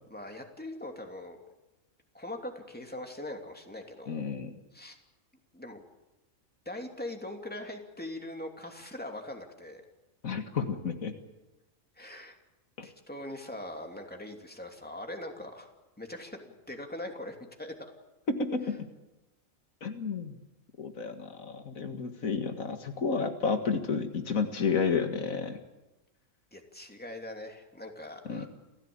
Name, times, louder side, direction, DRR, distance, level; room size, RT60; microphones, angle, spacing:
voice 1, 0.1-1.4 2.1-4.3 4.7-5.0 5.5-5.8 6.6-9.8 12.0-12.4 12.8-15.7 16.0-17.7 26.5-28.5, left 1 dB, 5° left, 3 dB, 2.9 m, -41 dB
voice 2, 4.1-4.5 10.2-11.2 12.8-12.9 18.3-18.9 19.8-20.4 20.8-25.6 28.3-28.5, left 5 dB, 85° left, 7 dB, 2.2 m, -31 dB
28.5 x 15.5 x 8.8 m, 1.0 s
omnidirectional pair, 1.4 m